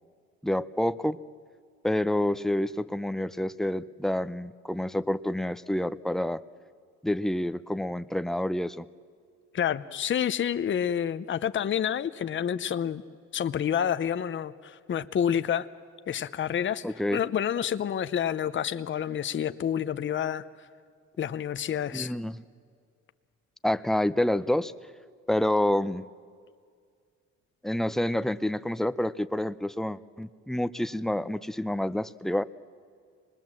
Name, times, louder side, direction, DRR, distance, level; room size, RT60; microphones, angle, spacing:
voice 1, 0.4-1.2 1.8-6.4 7.0-8.9 16.8-17.2 21.9-22.4 23.6-24.7 25.3-26.0 27.6-32.4, left 1 dB, ahead, 13 dB, 0.5 m, -28 dB
voice 2, 9.5-13.0 13.3-15.7 16.1-16.9 17.1-20.5 21.2-22.1, left 9 dB, 40° left, 12 dB, 0.7 m, -28 dB
25.0 x 20.5 x 7.5 m, 2.1 s
cardioid pair, 90°, 30 cm